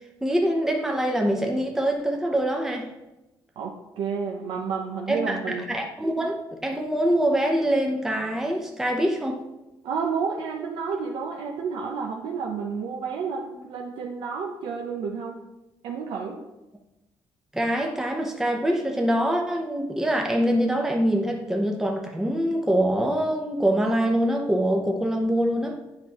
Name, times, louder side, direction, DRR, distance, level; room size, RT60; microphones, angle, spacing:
voice 1, 0.2-2.9 5.1-9.4 17.5-25.8, right 1 dB, 5° right, 1 dB, 0.7 m, -24 dB
voice 2, 3.6-5.7 9.8-15.4 15.8-16.4, right 5 dB, 80° right, 0 dB, 0.6 m, -30 dB
8.5 x 4.7 x 3.0 m, 0.98 s
cardioid pair, 105°, 9 cm